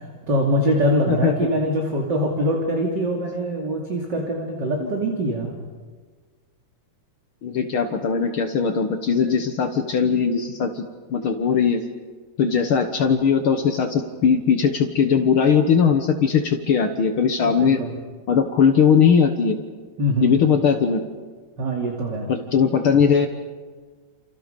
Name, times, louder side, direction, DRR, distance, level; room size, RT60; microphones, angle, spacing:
voice 1, 0.3-5.5 17.4-17.9 20.0-20.3 21.6-22.3, equal, 30° right, 0 dB, 3.0 m, -23 dB
voice 2, 7.4-10.8 11.1-11.8 12.4-17.8 18.3-19.6 20.2-21.0 22.3-23.3, left 6 dB, 90° left, 6 dB, 1.1 m, -19 dB
29.0 x 29.0 x 5.3 m, 1.5 s
omnidirectional pair, 4.3 m